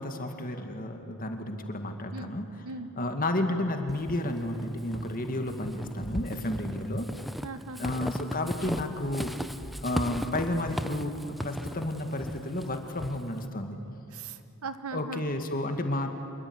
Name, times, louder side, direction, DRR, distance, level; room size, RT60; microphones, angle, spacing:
voice 1, 0.0-2.5 3.0-7.1 7.8-9.3 9.8-13.8 14.9-16.1, left 1 dB, 40° left, 5 dB, 2.2 m, -31 dB
Walk footsteps / Squeak, 3.9-13.5, equal, ahead, 0.6 m, -37 dB
voice 2, 7.4-8.0 14.1-15.2, right 3 dB, 80° right, 11 dB, 1.3 m, -39 dB
27.0 x 22.0 x 9.8 m, 2.7 s
head